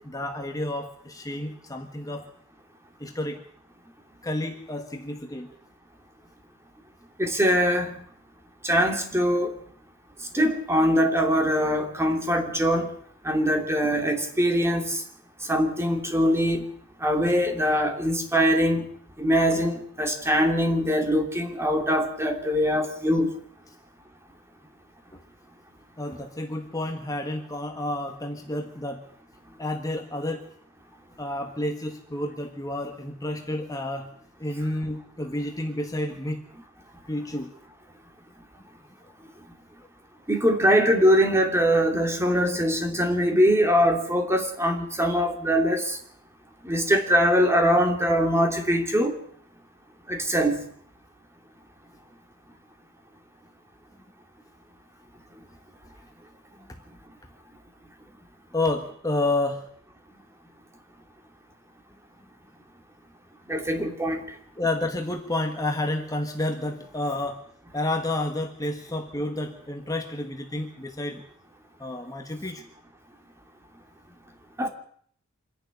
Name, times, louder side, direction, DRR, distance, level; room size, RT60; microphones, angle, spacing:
voice 1, 0.0-2.3 3.0-3.4 4.2-5.5 25.1-25.2 26.0-29.1 29.6-30.5 31.2-34.1 34.4-36.4 37.1-37.5 58.5-59.7 64.6-67.4 67.7-71.2 71.8-72.6, left 1 dB, 15° left, 4 dB, 1.5 m, -30 dB
voice 2, 7.2-7.9 8.6-9.5 10.3-12.9 13.2-15.0 15.5-16.7 17.0-18.9 19.2-23.3 40.3-46.0 46.6-49.2 50.1-50.6 63.5-64.2 74.6-74.7, equal, 15° right, 4 dB, 2.8 m, -22 dB
26.0 x 11.0 x 9.7 m, 0.62 s
head